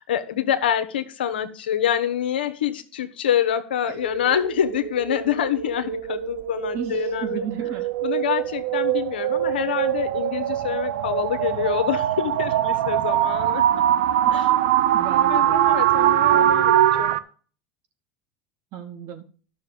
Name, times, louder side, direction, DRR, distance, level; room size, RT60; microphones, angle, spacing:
voice 1, 0.0-7.5 8.0-13.6 14.3-14.5 15.3-17.1, left 9 dB, 85° left, 9 dB, 1.2 m, -26 dB
sound 1, 4.0-17.2, right 12 dB, 75° right, 0.8 m, -22 dB
voice 2, 6.7-7.9 14.2-14.3 14.9-15.6 16.3-16.6 18.7-19.2, right 8 dB, 55° right, 6 dB, 2.5 m, -34 dB
12.5 x 6.5 x 5.1 m, 0.41 s
hypercardioid pair, 90°, 5 cm